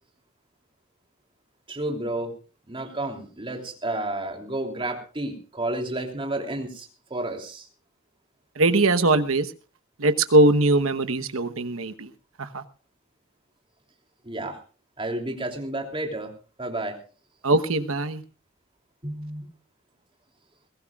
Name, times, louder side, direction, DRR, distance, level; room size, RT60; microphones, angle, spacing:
voice 1, 1.7-2.3 2.7-7.7 14.2-14.6 15.0-16.3 16.6-17.0 19.0-19.4, right 1 dB, 25° right, 3 dB, 3.1 m, -31 dB
voice 2, 8.6-9.5 10.0-12.1 12.4-12.6 17.4-18.2, right 2 dB, 75° right, 9 dB, 1.1 m, -21 dB
22.0 x 17.5 x 2.4 m, 0.36 s
head